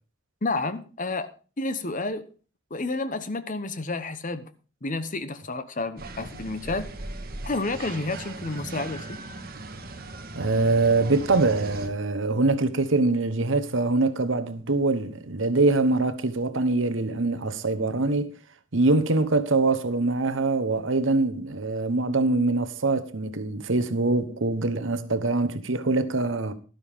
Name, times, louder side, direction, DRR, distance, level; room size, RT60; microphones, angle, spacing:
voice 1, 0.4-2.3 2.7-4.5 4.8-6.9 7.4-9.2, left 3 dB, 40° left, 1.0 m, -30 dB
sound 1, 6.0-11.9, right 2 dB, 50° right, 1.5 m, -38 dB
voice 2, 10.3-18.3 18.7-26.5, right 3 dB, 65° right, 1.1 m, -24 dB
12.5 x 12.0 x 3.6 m
head